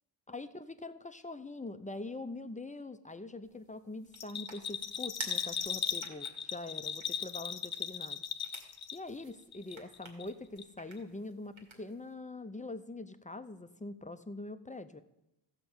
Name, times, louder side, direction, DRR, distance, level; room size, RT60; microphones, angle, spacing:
voice 1, 0.3-8.2 8.9-15.0, left 2 dB, 15° left, 11 dB, 0.6 m, -44 dB
sound 1, 3.4-12.1, right 3 dB, 80° right, 2.3 m, -52 dB
Bell, 4.1-9.2 9.5-10.3 10.6-10.7, left 7 dB, 55° left, 0.8 m, -37 dB
14.5 x 5.7 x 8.0 m, 0.90 s
wide cardioid pair, 110°, 46 cm